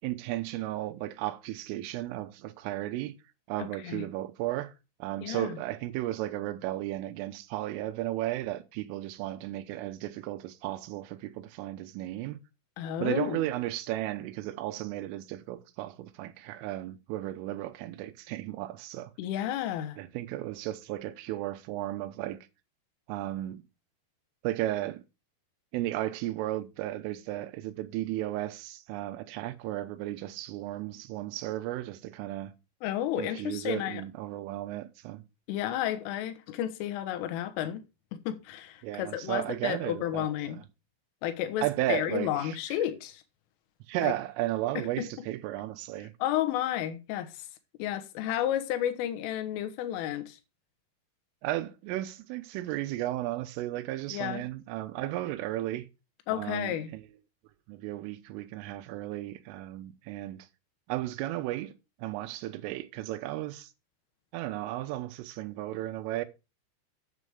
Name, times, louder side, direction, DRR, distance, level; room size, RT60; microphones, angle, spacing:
voice 1, 0.0-3.2 3.5-4.7 5.0-12.4 13.0-19.1 20.0-22.5 23.1-23.6 24.4-25.0 25.7-32.5 33.2-35.2 38.8-40.6 41.6-42.6 43.9-46.1 51.4-55.9 56.3-57.1 57.7-60.5 60.9-61.7 62.0-63.7 64.3-66.3, right 15 dB, 90° right, 3.5 m, -34 dB
voice 2, 3.6-4.1 5.2-5.6 12.8-13.5 19.2-20.0 32.8-34.0 35.5-37.8 38.1-40.6 41.2-43.2 44.0-44.1 44.8-45.1 46.2-47.5 47.8-50.4 54.1-54.5 56.3-56.9, left 12 dB, 85° left, 3.7 m, -32 dB
8.8 x 7.6 x 4.8 m
omnidirectional pair, 5.7 m